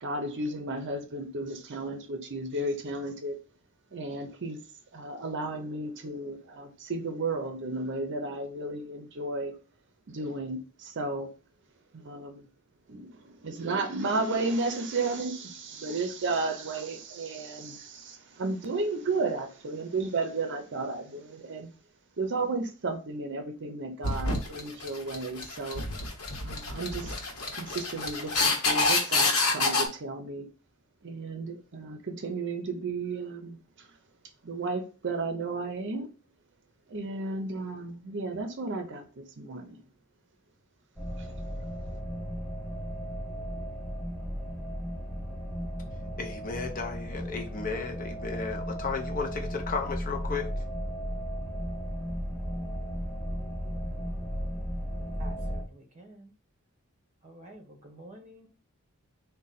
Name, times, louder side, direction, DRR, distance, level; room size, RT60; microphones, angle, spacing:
voice 1, 0.0-3.4 3.9-4.6 4.9-9.5 10.1-11.3 11.9-12.4 12.9-21.7 22.2-25.8 26.4-27.1 27.5-30.5 31.0-33.9 34.4-36.1 36.9-39.8, right 3 dB, 55° right, 0.7 m, -33 dB
sound 1, 24.0-29.8, left 3 dB, 75° left, 1.0 m, -28 dB
sound 2, 41.0-55.6, equal, ahead, 1.1 m, -35 dB
voice 2, 46.2-50.5, left 5 dB, 40° left, 0.6 m, -34 dB
voice 3, 55.2-56.3 57.2-58.5, right 1 dB, 35° right, 1.0 m, -49 dB
3.9 x 2.2 x 4.0 m
head